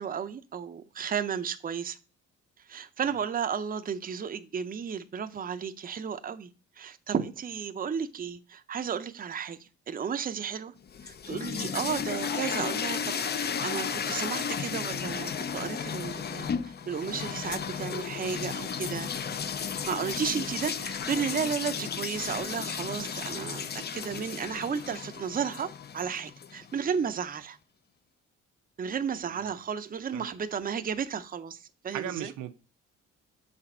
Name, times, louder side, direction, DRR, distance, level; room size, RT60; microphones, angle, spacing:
voice 1, 0.0-2.0 2.6-6.5 6.8-10.7 11.0-19.1 19.9-27.6 28.8-32.3, right 7 dB, 30° right, 0.6 m, -33 dB
sound 1, 10.9-26.9, left 7 dB, 35° left, 0.5 m, -34 dB
voice 2, 29.3-29.6 30.1-30.3 31.9-32.5, right 11 dB, 80° right, 0.7 m, -38 dB
6.8 x 4.1 x 4.3 m
cardioid pair, 90°, 30 cm